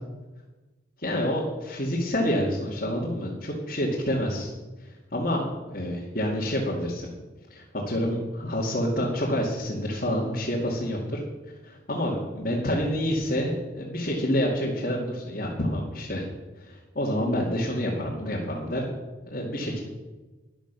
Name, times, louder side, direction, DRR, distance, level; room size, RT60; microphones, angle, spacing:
voice 1, 1.0-4.5 4.8-7.1 7.5-11.2 11.6-16.2 16.6-18.9 19.2-19.8, equal, 45° left, -5 dB, 2.4 m, -28 dB
12.5 x 11.0 x 6.2 m, 1.2 s
head